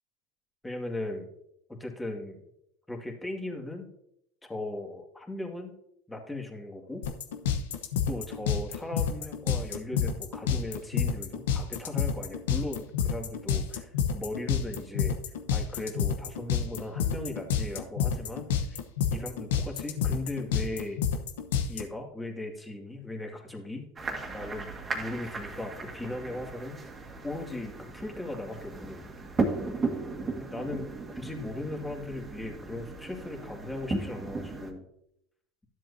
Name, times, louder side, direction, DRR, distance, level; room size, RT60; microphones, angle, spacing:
voice 1, 0.6-1.3 1.7-2.4 2.9-3.9 4.4-5.7 6.1-7.0 8.1-15.2 15.5-18.8 19.1-21.0 21.7-23.9 24.3-24.7 24.9-26.8 27.2-29.1 30.4-30.8 31.2-34.9, left 2 dB, 10° left, 1 dB, 2.1 m, -38 dB
sound 1, 7.0-21.8, left 7 dB, 90° left, 0.9 m, -28 dB
sound 2, 24.0-34.7, right 3 dB, 25° right, 1.8 m, -36 dB
12.5 x 7.5 x 2.7 m, 0.76 s
supercardioid pair, 100°, 0 cm